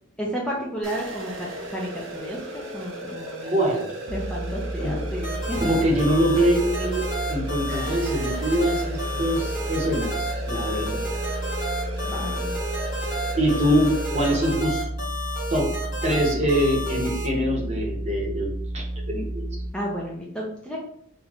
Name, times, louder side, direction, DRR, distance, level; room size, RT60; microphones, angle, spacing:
voice 1, 0.2-3.6 4.1-5.8 12.0-12.5 19.7-20.8, equal, 5° left, -4 dB, 0.4 m, -32 dB
sound 1, 0.8-14.5, right 1 dB, 75° right, 0.9 m, -36 dB
voice 2, 3.5-3.9 4.8-5.0 5.6-7.0 7.3-11.0 13.3-14.9 15.5-15.7 16.0-19.5, equal, 35° right, -1 dB, 0.8 m, -24 dB
sound 2, 4.1-19.7, right 1 dB, 50° right, 0.5 m, -32 dB
sound 3, 5.2-17.3, equal, 45° left, 1.3 m, -32 dB
3.0 x 2.2 x 3.8 m, 0.69 s
head